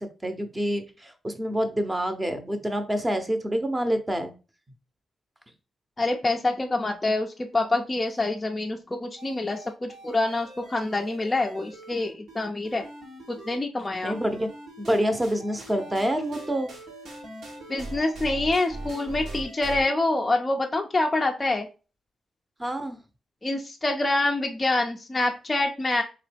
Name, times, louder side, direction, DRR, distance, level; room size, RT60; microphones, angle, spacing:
voice 1, 0.0-4.3 14.0-14.5 14.8-16.7 22.6-23.0, equal, 15° right, 7 dB, 0.7 m, -27 dB
voice 2, 6.0-12.8 13.3-14.2 17.7-21.7 23.4-26.0, left 2 dB, 20° left, 1 dB, 0.4 m, -26 dB
sound 1, 9.2-13.6 13.9-19.9, right 1 dB, 90° right, 1.4 m, -41 dB
3.8 x 3.0 x 3.3 m, 0.33 s
cardioid pair, 105°, 0 cm